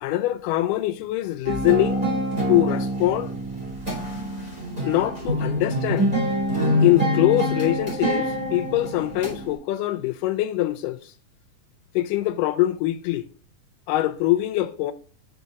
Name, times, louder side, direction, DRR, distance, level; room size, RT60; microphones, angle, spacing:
voice 1, 0.0-2.1 2.5-3.3 4.8-6.1 6.8-11.1 12.0-13.3 13.9-14.9, left 15 dB, 80° left, 2.1 m, -23 dB
sound 1, 1.4-9.5, equal, 15° right, 1.8 m, -25 dB
7.0 x 4.5 x 4.0 m
omnidirectional pair, 3.8 m